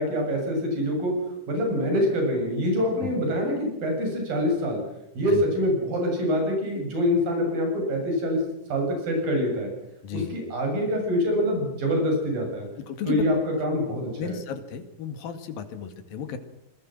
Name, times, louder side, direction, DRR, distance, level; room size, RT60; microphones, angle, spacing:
voice 1, 0.0-4.8 5.2-9.7 10.1-12.7 13.1-14.4, equal, 85° right, 2 dB, 9.0 m, -25 dB
voice 2, 10.0-10.3 12.8-13.3 14.2-16.4, left 8 dB, 90° left, 8 dB, 3.8 m, -34 dB
26.5 x 21.5 x 6.2 m, 0.83 s
omnidirectional pair, 4.0 m